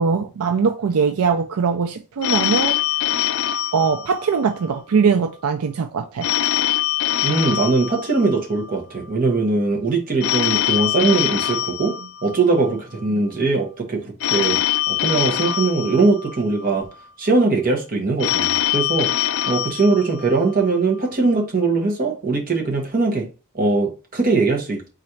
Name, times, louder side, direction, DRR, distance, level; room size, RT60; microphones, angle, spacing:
voice 1, 0.0-2.8 3.7-6.3, right 5 dB, 75° right, 0.4 m, -21 dB
Telephone, 2.2-4.7 6.2-8.7 10.2-12.7 14.2-16.7 18.2-20.7, left 12 dB, 60° left, 0.3 m, -23 dB
voice 2, 7.2-14.6 14.9-16.8 17.2-19.1 19.5-23.3 23.5-24.8, right 3 dB, 40° right, 1.0 m, -20 dB
4.1 x 2.5 x 4.4 m
head